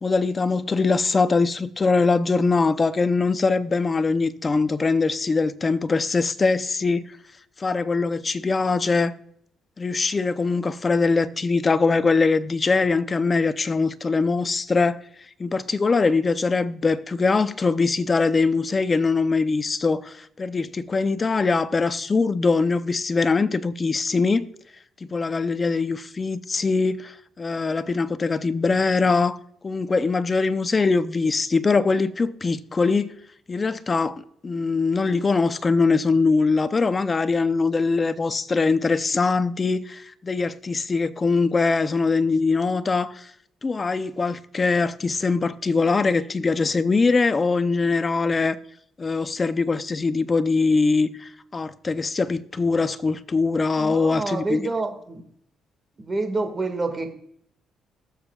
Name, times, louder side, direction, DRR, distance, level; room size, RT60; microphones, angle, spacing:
voice 1, 0.0-7.1 7.6-9.1 9.8-15.0 15.4-24.5 25.1-29.4 29.6-33.1 33.5-43.3 43.6-48.6 49.0-54.6, left 4 dB, 30° left, 0.6 m, -22 dB
voice 2, 53.7-55.2 56.0-57.1, right 3 dB, 30° right, 1.9 m, -28 dB
21.0 x 7.0 x 2.4 m
cardioid pair, 90°, 0 cm